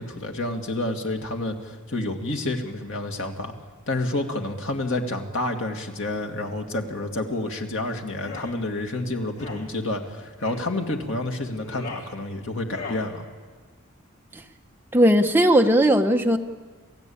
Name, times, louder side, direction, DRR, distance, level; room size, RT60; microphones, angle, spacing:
voice 1, 0.0-3.5 3.9-13.3, left 2 dB, 60° left, 3 dB, 2.4 m, -29 dB
sound 1, 8.1-8.5 9.3-9.6 10.4-10.7 11.5-12.1 12.6-13.1, left 4 dB, 85° left, 3.8 m, -38 dB
voice 2, 14.9-16.4, right 1 dB, 10° right, 4 dB, 1.1 m, -17 dB
28.5 x 16.0 x 8.8 m, 1.5 s
head